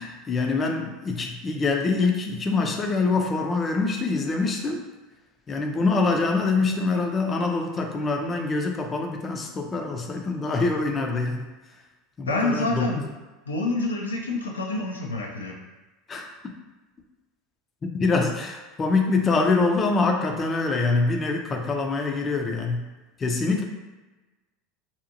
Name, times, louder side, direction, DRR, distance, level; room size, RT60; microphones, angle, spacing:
voice 1, 0.0-4.8 5.5-11.5 12.2-13.0 16.1-16.3 17.9-22.9 23.2-23.6, left 3 dB, 30° left, 2 dB, 0.5 m, -25 dB
voice 2, 12.3-13.0 13.5-15.6, left 2 dB, 90° left, -1 dB, 0.4 m, -27 dB
2.7 x 2.4 x 2.6 m, 1.2 s
hypercardioid pair, 80°, 0 cm